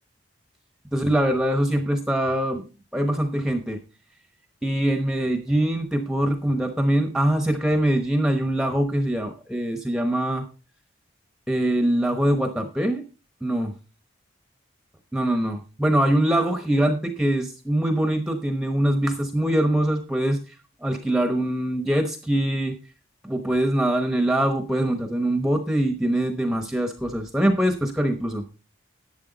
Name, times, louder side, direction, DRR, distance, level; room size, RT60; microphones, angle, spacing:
voice 1, 0.9-2.7 2.9-3.8 4.6-10.4 11.5-13.0 13.4-13.7 15.1-20.4 20.8-22.7 23.2-28.4, right 1 dB, ahead, 5 dB, 0.9 m, -23 dB
11.5 x 8.4 x 4.0 m, 0.33 s
head